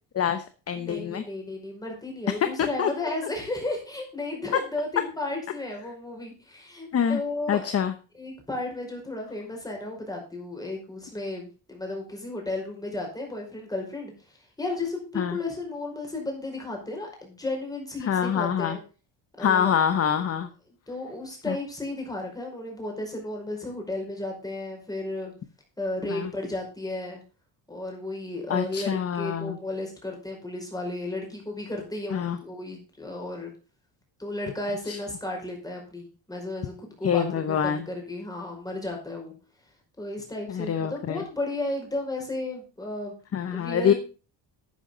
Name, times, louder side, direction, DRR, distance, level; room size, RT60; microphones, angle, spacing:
voice 1, 0.1-1.2 2.6-2.9 6.9-7.2 7.5-7.9 15.1-15.4 18.0-18.8 19.4-20.5 21.5-21.6 26.1-26.3 28.5-29.6 32.1-32.4 34.9-35.0 37.0-37.8 40.5-41.2 43.3-43.9, left 8 dB, 35° left, 10 dB, 1.0 m, -25 dB
voice 2, 0.7-7.8 8.1-18.8 19.4-19.8 20.9-25.3 25.8-27.2 27.7-33.5 34.2-39.3 40.0-43.2 43.4-44.0, left 2 dB, 10° left, 1 dB, 5.2 m, -34 dB
12.0 x 9.2 x 3.8 m, 0.34 s
cardioid pair, 150°, 43 cm